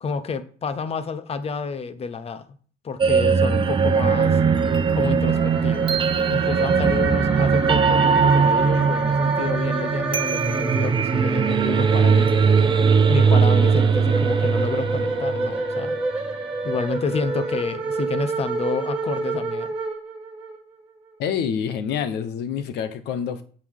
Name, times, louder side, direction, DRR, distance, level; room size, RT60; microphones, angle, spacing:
voice 1, 0.0-2.4 2.8-4.4 4.9-6.0 6.3-12.5 13.1-16.0 16.6-19.7, left 5 dB, 35° left, 0.9 m, -29 dB
sound 1, 3.0-16.0, right 6 dB, 30° right, 0.7 m, -20 dB
sound 2, 5.3-20.6, right 3 dB, 10° right, 4.0 m, -28 dB
voice 2, 21.2-23.4, left 8 dB, 80° left, 1.1 m, -27 dB
8.3 x 7.5 x 3.7 m
cardioid pair, 110°, 17 cm